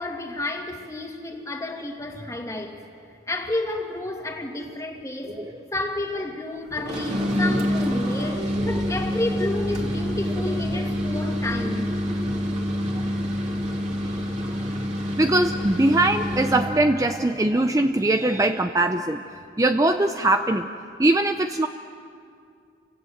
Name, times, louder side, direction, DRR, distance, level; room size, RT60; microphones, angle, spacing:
voice 1, 0.0-2.8 3.3-11.9 14.1-14.2, left 2 dB, 15° left, 2.2 m, -31 dB
sound 1, 6.8-16.8, equal, 35° right, 3.2 m, -27 dB
voice 2, 15.2-20.7 21.0-21.7, right 2 dB, 15° right, 0.6 m, -21 dB
29.5 x 25.0 x 7.9 m
head